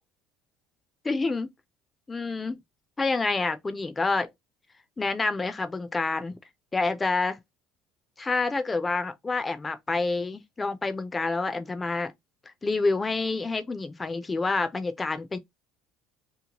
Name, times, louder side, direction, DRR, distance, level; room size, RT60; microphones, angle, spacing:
voice 1, 1.0-1.5 2.1-2.6 3.0-4.3 5.0-6.4 6.7-7.4 8.2-12.1 12.6-15.4, left 3 dB, 15° left, 0.4 m, -28 dB
2.9 x 2.1 x 2.8 m
cardioid pair, 145°, 0 cm